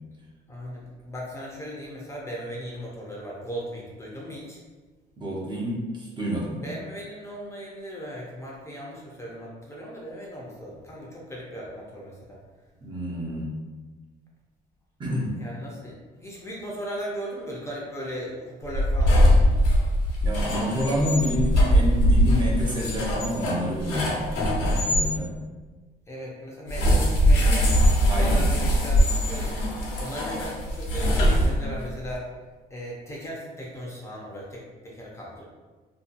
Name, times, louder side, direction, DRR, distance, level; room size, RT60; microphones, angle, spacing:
voice 1, 0.5-4.6 6.5-12.4 15.4-19.4 26.1-27.8 28.2-32.3 32.7-35.4, equal, 15° left, -4 dB, 0.5 m, -37 dB
voice 2, 5.2-6.6 12.8-13.6 15.0-15.3 20.2-25.3 28.1-28.4, equal, 25° right, -4 dB, 0.6 m, -28 dB
sound 1, 18.7-25.1 26.7-31.9, equal, 85° left, 0.8 m, -21 dB
2.7 x 2.2 x 2.5 m, 1.3 s
cardioid pair, 110°, 17 cm